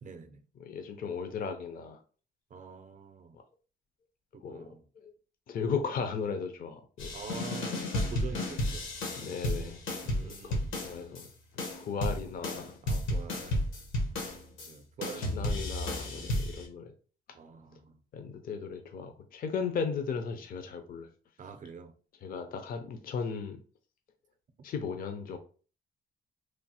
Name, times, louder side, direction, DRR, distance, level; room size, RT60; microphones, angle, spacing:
voice 1, 0.0-0.5 2.5-3.4 4.3-4.8 7.1-9.5 10.0-10.7 12.8-13.7 14.6-15.5 16.1-16.4 17.3-18.0 21.4-21.9, right 5 dB, 40° right, 0.5 m, -46 dB
voice 2, 0.7-2.0 4.4-4.7 5.5-7.1 9.2-9.8 10.2-11.3 11.7-12.8 15.2-16.9 18.1-21.1 22.2-23.6 24.6-25.4, left 5 dB, 45° left, 0.4 m, -36 dB
sound 1, 7.0-11.3 11.6-14.7 15.0-16.7, left 1 dB, 85° left, 0.9 m, -33 dB
3.1 x 2.0 x 2.8 m
cardioid pair, 90°, 20 cm